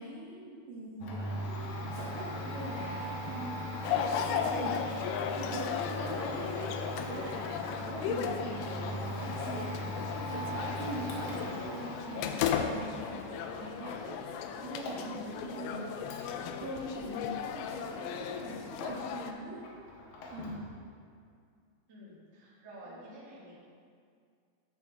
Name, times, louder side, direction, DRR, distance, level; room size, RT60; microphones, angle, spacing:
voice 1, 0.0-1.6 1.9-6.7 7.1-9.7 10.2-18.6 18.9-19.9 20.3-20.6 22.9-23.0, right 1 dB, 75° right, -6 dB, 1.6 m, -42 dB
Domestic sounds home sounds, 1.0-19.3 19.6-20.7, equal, 70° left, 2.5 m, -40 dB
sound 1, 3.8-19.3, left 7 dB, 85° left, 2.1 m, -36 dB
voice 2, 21.9-23.5, right 1 dB, 40° right, -7 dB, 1.1 m, -50 dB
11.0 x 6.3 x 3.6 m, 2.2 s
omnidirectional pair, 4.9 m